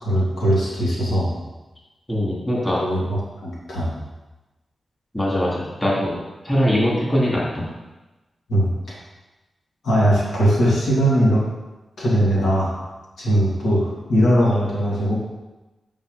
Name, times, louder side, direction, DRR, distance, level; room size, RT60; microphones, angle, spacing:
voice 1, 0.0-1.3 2.8-3.9 8.5-8.9 9.8-11.4 12.0-12.8 13.2-15.1, equal, 90° left, -6 dB, 2.7 m, -20 dB
voice 2, 2.1-2.8 5.1-6.2 6.4-7.7, equal, 15° left, -6 dB, 3.1 m, -21 dB
8.3 x 5.4 x 5.3 m, 1.1 s
wide cardioid pair, 105°, 0 cm